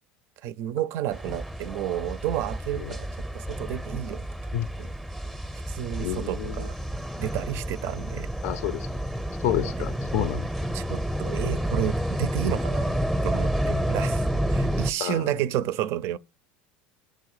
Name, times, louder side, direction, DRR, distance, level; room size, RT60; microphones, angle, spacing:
voice 1, 0.4-3.1 3.3-4.3 4.8-4.9 5.7-6.7 7.2-8.3 10.7-12.9 13.2-16.2, right 12 dB, 60° right, 0.4 m, -31 dB
sound 1, 1.1-14.9, equal, ahead, 0.6 m, -29 dB
voice 2, 6.0-6.7 8.4-8.9 9.4-10.5 15.0-15.3, left 12 dB, 65° left, 0.4 m, -29 dB
6.6 x 3.8 x 4.7 m
hypercardioid pair, 90°, 5 cm